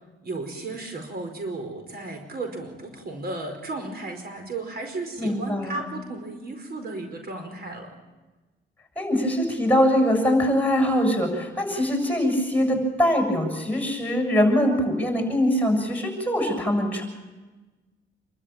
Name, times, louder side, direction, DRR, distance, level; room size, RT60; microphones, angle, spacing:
voice 1, 0.2-7.9, right 2 dB, 50° right, 5 dB, 4.8 m, -34 dB
voice 2, 5.2-5.9 9.0-17.0, equal, 10° left, 4 dB, 7.2 m, -22 dB
27.5 x 13.0 x 9.0 m, 1.2 s
cardioid pair, 90°, 20 cm